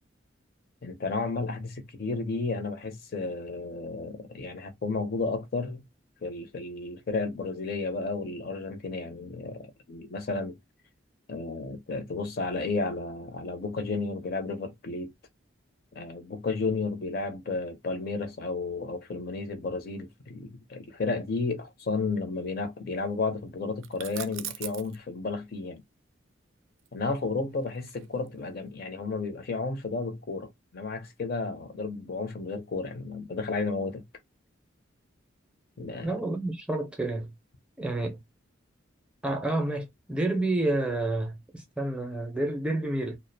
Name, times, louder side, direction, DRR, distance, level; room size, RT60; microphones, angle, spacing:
voice 1, 0.8-5.8 6.2-10.6 11.3-15.1 15.9-25.8 26.9-34.0 35.8-36.1, left 3 dB, 50° left, 0.6 m, -32 dB
sound 1, 23.8-25.0 26.8-28.4, right 12 dB, 90° right, 0.4 m, -40 dB
voice 2, 36.0-37.3 37.8-38.2 39.2-43.2, right 2 dB, 5° right, 0.5 m, -29 dB
2.3 x 2.0 x 2.6 m
head